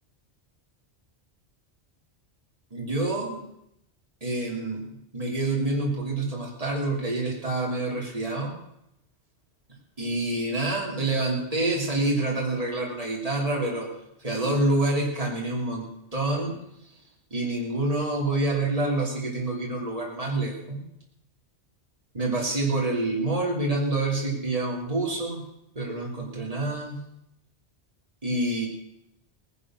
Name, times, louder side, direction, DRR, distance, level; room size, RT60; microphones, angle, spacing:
voice 1, 2.7-3.4 4.2-8.6 10.0-13.9 14.2-16.6 17.3-20.8 22.1-25.4 25.7-27.0 28.2-28.7, right 2 dB, 35° right, -2 dB, 3.1 m, -27 dB
18.5 x 11.0 x 6.2 m, 0.81 s
omnidirectional pair, 1.1 m